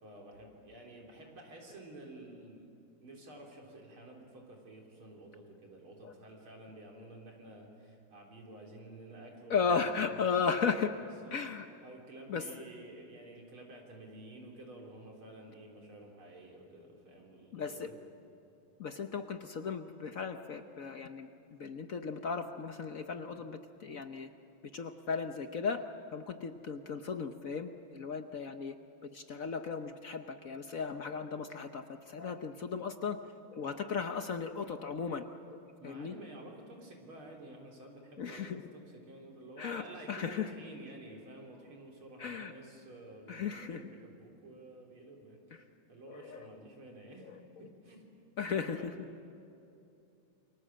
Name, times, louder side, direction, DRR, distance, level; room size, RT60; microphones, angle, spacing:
voice 1, 0.0-2.7 3.0-10.6 11.0-11.4 11.8-18.0 35.8-47.3 47.6-48.1 48.5-48.9, right 2 dB, 90° right, 0 dB, 4.6 m, -51 dB
voice 2, 9.5-10.9 11.3-11.7 12.3-12.5 17.5-17.9 18.8-24.3 24.7-28.7 29.1-33.2 33.5-36.1 38.2-38.6 39.6-40.5 42.2-42.5 43.3-43.8 46.1-46.5 48.4-48.9, left 5 dB, 55° left, 7 dB, 1.0 m, -36 dB
29.0 x 23.5 x 7.6 m, 2.8 s
omnidirectional pair, 2.3 m